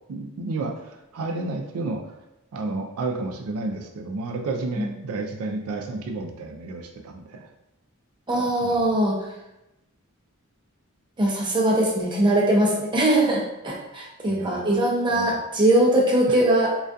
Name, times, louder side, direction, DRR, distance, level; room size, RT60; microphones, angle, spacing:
voice 1, 0.1-2.2 2.5-7.5 8.3-9.0 14.3-14.8 15.1-15.4 16.3-16.4, right 3 dB, 80° right, 4 dB, 0.4 m, -32 dB
voice 2, 8.3-9.2 11.2-16.7, right 1 dB, 20° right, -2 dB, 0.5 m, -21 dB
2.3 x 2.2 x 2.5 m, 0.92 s
head